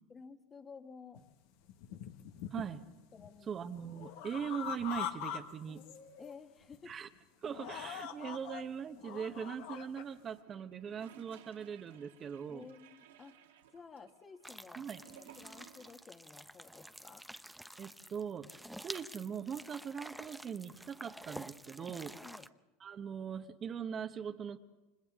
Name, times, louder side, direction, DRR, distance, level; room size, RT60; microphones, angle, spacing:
voice 1, 0.1-1.2 3.1-3.7 6.2-6.9 12.5-13.4 13.7-14.8 15.1-17.2 21.8-22.5, left 5 dB, 25° left, 6 dB, 1.7 m, -53 dB
sound 1, 1.1-1.2 1.7-2.8 3.2-5.4 5.7-6.3 6.7-6.9 7.4-8.6 9.0-10.0, left 9 dB, 70° left, 1.6 m, -43 dB
voice 2, 2.5-2.8 3.5-5.8 6.9-7.1 7.4-12.7 14.7-15.0 17.8-18.5 18.8-22.2 22.8-24.6, right 7 dB, 35° right, 8 dB, 1.2 m, -41 dB
Gurgling / Toilet flush, 10.0-16.1 16.4-16.5, right 8 dB, 85° right, 2.9 m, -59 dB
sound 2, 14.4-22.5, right 1 dB, 5° right, 0.8 m, -50 dB
29.5 x 25.0 x 3.8 m, 1.1 s
hypercardioid pair, 90°, 0 cm